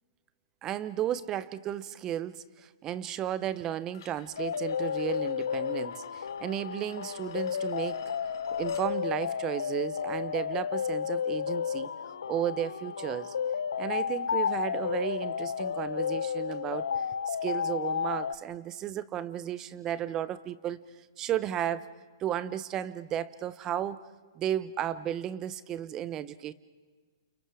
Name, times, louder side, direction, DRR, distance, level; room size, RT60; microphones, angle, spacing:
voice 1, 0.6-8.0 8.6-11.9 12.3-13.3 13.8-20.8 21.2-21.9 22.2-24.0 24.3-26.5, right 11 dB, 25° right, 16 dB, 0.9 m, -34 dB
sound 1, 3.9-8.9, left 9 dB, 60° left, 2.1 m, -54 dB
sound 2, 4.4-18.3, left 7 dB, 80° left, 0.9 m, -32 dB
30.0 x 29.0 x 5.0 m, 1.5 s
hypercardioid pair, 135°, 2 cm